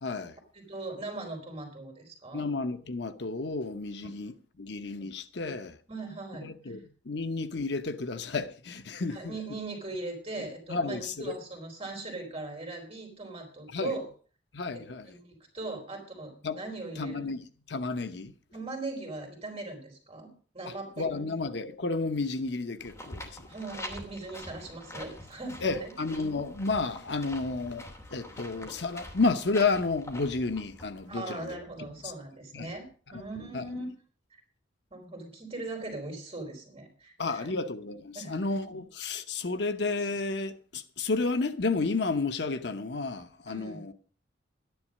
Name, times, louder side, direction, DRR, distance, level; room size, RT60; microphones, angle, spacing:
voice 1, 0.0-0.4 2.3-5.8 6.4-9.3 10.7-11.3 13.7-14.0 14.5-15.1 16.4-16.6 17.0-18.3 20.7-23.5 25.6-27.9 28.1-32.1 32.5-32.7 33.1-33.2 33.5-33.6 37.2-43.9, left 3 dB, 65° left, 0.9 m, -32 dB
voice 2, 0.5-2.5 5.9-6.8 9.1-14.0 14.9-17.2 18.5-21.1 23.4-25.9 31.1-32.8 33.1-33.9 34.9-37.6 38.1-38.6 43.5-43.8, right 2 dB, 30° right, 4.3 m, -40 dB
sound 1, 22.8-31.1, left 1 dB, 15° left, 2.8 m, -45 dB
12.5 x 10.5 x 6.4 m
head